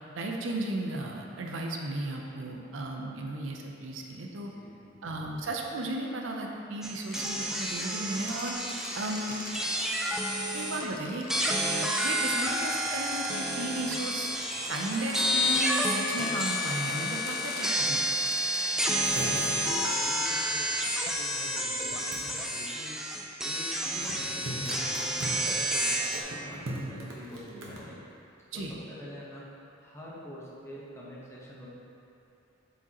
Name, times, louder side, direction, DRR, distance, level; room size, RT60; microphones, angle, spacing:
voice 1, 0.1-4.5 5.0-8.5 8.9-9.4 10.5-11.5 12.0-14.3 14.7-18.0 28.5-28.8, right 2 dB, 75° right, 1 dB, 0.6 m, -35 dB
voice 2, 4.4-5.1 19.1-28.0 28.5-31.7, equal, 15° left, -7 dB, 1.1 m, -47 dB
sound 1, 6.8-10.9 11.3-26.2, equal, 5° right, 0.4 m, -30 dB
sound 2, 7.0-20.0, left 2 dB, 50° left, 0.7 m, -44 dB
el increible mundo celofan, 18.8-21.1 22.0-22.3 23.9-27.8, right 1 dB, 90° right, 1.1 m, -39 dB
7.8 x 5.0 x 2.9 m, 2.7 s
head